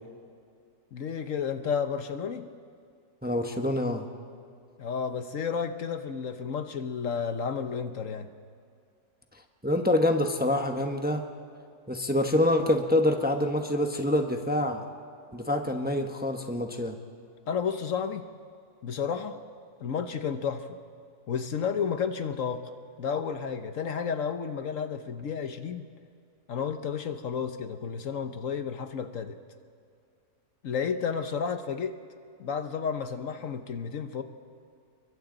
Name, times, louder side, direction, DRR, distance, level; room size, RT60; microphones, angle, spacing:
voice 1, 0.9-2.5 4.8-8.3 17.5-18.2 18.8-19.4 19.8-20.8 21.3-25.9 26.5-29.4 30.6-31.9 32.4-34.2, left 6 dB, 65° left, 9 dB, 1.2 m, -32 dB
voice 2, 3.2-4.1 9.6-11.3 11.9-14.8 15.3-16.9, left 1 dB, 5° right, 4 dB, 1.0 m, -26 dB
29.5 x 23.0 x 4.0 m, 2.4 s
omnidirectional pair, 1.6 m